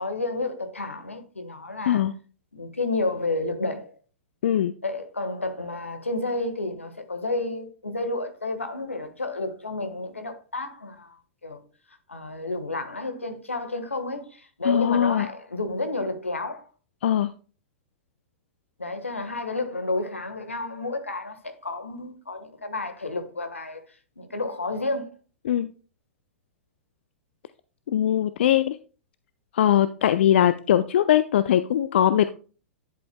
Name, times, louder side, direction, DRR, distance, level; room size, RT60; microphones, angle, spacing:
voice 1, 0.0-2.0 2.5-3.9 4.8-11.2 11.4-11.6 12.1-16.6 18.8-23.8 24.2-25.1, left 2 dB, 85° left, 1.3 m, -31 dB
voice 2, 4.4-4.7 14.6-15.3 17.0-17.3 25.5-25.7 27.9-28.8 29.5-32.3, left 11 dB, 60° left, 0.4 m, -21 dB
11.0 x 7.7 x 2.2 m
figure-of-eight pair, 100°, 7 cm